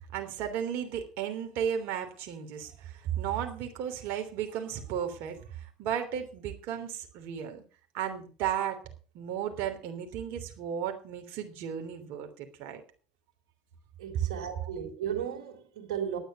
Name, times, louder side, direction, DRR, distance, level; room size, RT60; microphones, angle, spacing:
voice 1, 0.1-7.6 7.9-8.8 9.1-12.8, right 9 dB, 60° right, 3.2 m, -34 dB
voice 2, 14.0-16.2, right 8 dB, 75° right, 3.7 m, -35 dB
11.5 x 9.4 x 6.8 m
supercardioid pair, 100°, 4 cm